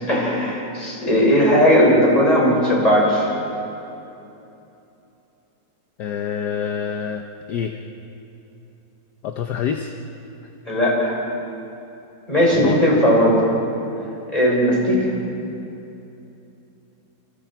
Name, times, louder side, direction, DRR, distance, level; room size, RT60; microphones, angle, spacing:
voice 1, 0.1-3.3 10.7-11.2 12.3-13.4 14.3-15.1, equal, 20° left, -3 dB, 6.2 m, -17 dB
voice 2, 6.0-7.8 9.2-9.9 12.5-12.8, left 8 dB, 65° left, 5 dB, 1.4 m, -27 dB
28.5 x 27.5 x 4.6 m, 2.9 s
omnidirectional pair, 2.0 m